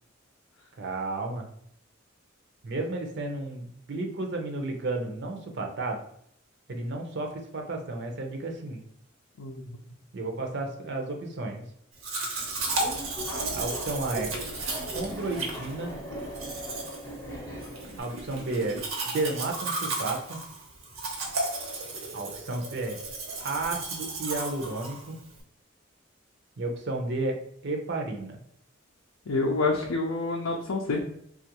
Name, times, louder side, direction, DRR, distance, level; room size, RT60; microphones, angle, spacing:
voice 1, 0.8-1.5 2.6-6.0 6.7-8.8 10.1-11.6 13.5-14.3 14.9-15.9 18.0-20.4 22.1-23.0 23.4-25.2 26.6-27.4 27.6-28.4, right 2 dB, 55° right, 3 dB, 0.5 m, -32 dB
voice 2, 9.4-9.8 29.3-31.0, left 3 dB, 80° left, 0 dB, 0.5 m, -28 dB
Domestic sounds home sounds, 12.0-25.4, right 2 dB, 85° right, 0.9 m, -34 dB
Subway metro underground, 12.4-18.0, equal, 15° left, 0.6 m, -39 dB
3.3 x 2.4 x 2.9 m, 0.68 s
head